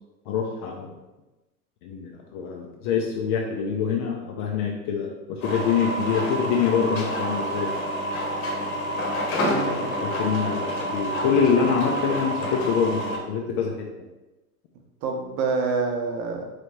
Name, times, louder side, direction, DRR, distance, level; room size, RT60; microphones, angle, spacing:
voice 1, 0.3-0.9 1.8-7.8 10.0-13.9, left 6 dB, 35° left, 1 dB, 0.5 m, -25 dB
sound 1, 5.4-13.2, equal, 55° left, 1.0 m, -28 dB
voice 2, 9.4-9.9 15.0-16.5, right 4 dB, 35° right, 2 dB, 0.8 m, -27 dB
4.0 x 3.1 x 3.1 m, 1.1 s
figure-of-eight pair, 85°, 46 cm